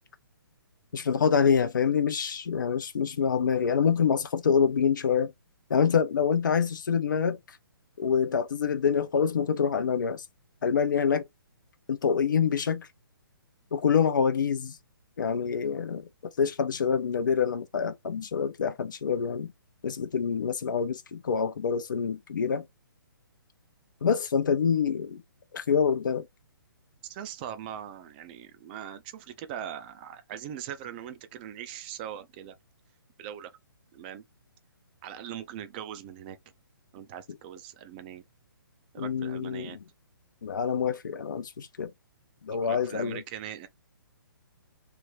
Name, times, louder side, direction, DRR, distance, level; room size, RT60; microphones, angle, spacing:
voice 1, 0.9-5.3 5.7-7.4 8.0-10.2 10.6-11.2 11.9-12.9 13.7-14.7 15.2-16.0 16.4-19.5 19.8-22.6 24.0-25.2 25.5-26.3 39.0-39.7 40.4-41.9 42.5-43.2, left 6 dB, 55° left, 0.7 m, -26 dB
voice 2, 27.1-32.6 33.2-33.5 33.9-34.2 35.0-36.4 36.9-38.2 38.9-39.8 42.5-43.7, right 10 dB, 25° right, 0.6 m, -41 dB
3.4 x 2.9 x 4.7 m
figure-of-eight pair, 130°, 12 cm